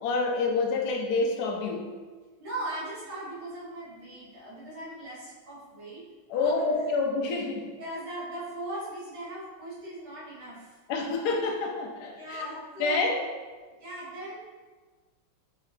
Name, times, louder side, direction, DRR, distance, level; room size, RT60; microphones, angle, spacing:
voice 1, 0.0-1.9 6.3-7.6 10.9-12.5 12.8-13.2, left 3 dB, 90° left, 1 dB, 0.8 m, -28 dB
voice 2, 2.4-6.1 6.3-6.7 7.8-10.7 12.1-13.2 13.8-14.4, right 1 dB, 75° right, -8 dB, 1.9 m, -39 dB
4.1 x 2.8 x 3.1 m, 1.4 s
omnidirectional pair, 2.4 m